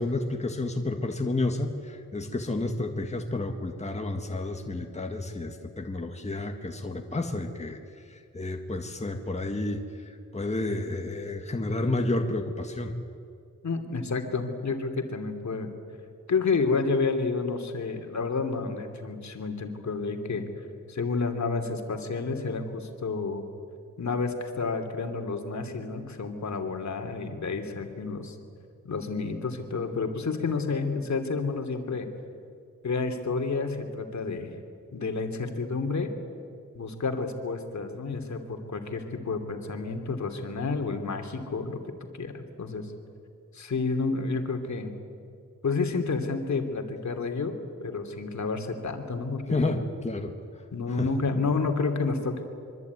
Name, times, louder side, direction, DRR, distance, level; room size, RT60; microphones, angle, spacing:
voice 1, 0.0-7.8 8.1-12.9 49.5-50.3 51.0-51.1, left 2 dB, 20° left, 3 dB, 1.9 m, -30 dB
voice 2, 13.6-15.7 16.3-20.4 20.9-23.4 24.0-28.4 28.8-32.1 32.8-34.5 34.9-36.1 36.7-41.9 42.2-42.9 43.5-44.9 45.6-47.5 47.8-49.8 50.7-52.4, left 4 dB, 60° left, 5 dB, 2.9 m, -30 dB
24.5 x 24.5 x 9.6 m, 2.4 s
wide cardioid pair, 130°, 31 cm